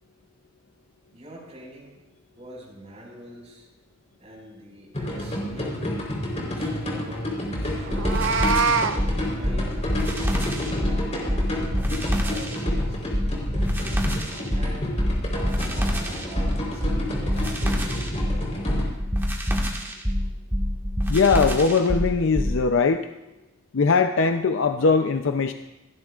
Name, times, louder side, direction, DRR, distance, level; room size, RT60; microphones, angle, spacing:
voice 1, 1.1-2.0 2.4-3.7 4.2-5.8 6.3-8.5 9.3-11.8 12.1-13.8 14.5-15.0 15.3-18.9, right 1 dB, 35° right, -3 dB, 5.2 m, -45 dB
sound 1, 4.9-18.8, left 1 dB, 35° left, 3.9 m, -30 dB
sound 2, 7.9-22.6, equal, 10° right, 1.6 m, -25 dB
Meow, 7.9-9.0, right 4 dB, 80° right, 0.6 m, -23 dB
voice 2, 21.1-23.0 23.7-25.5, left 4 dB, 80° left, 7 dB, 0.6 m, -20 dB
27.5 x 11.0 x 2.4 m, 0.97 s
head